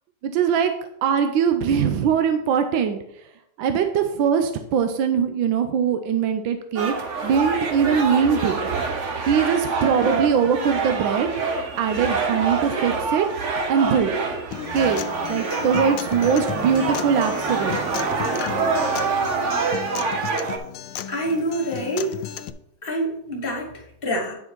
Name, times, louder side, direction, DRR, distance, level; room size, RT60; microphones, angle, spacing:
voice 1, 0.2-0.7 1.0-3.2 3.6-6.9 7.2-8.6 9.3-11.3 11.8-14.2 14.7-17.8, right 7 dB, 75° right, 7 dB, 1.3 m, -22 dB
sound 1, 6.8-20.6, right 4 dB, 50° right, 0.9 m, -26 dB
Acoustic guitar, 14.5-22.5, left 10 dB, 80° left, 1.4 m, -34 dB
voice 2, 21.1-22.2 22.8-24.3, right 1 dB, 30° left, 1 dB, 1.4 m, -26 dB
9.6 x 4.9 x 4.5 m, 0.76 s
omnidirectional pair, 2.3 m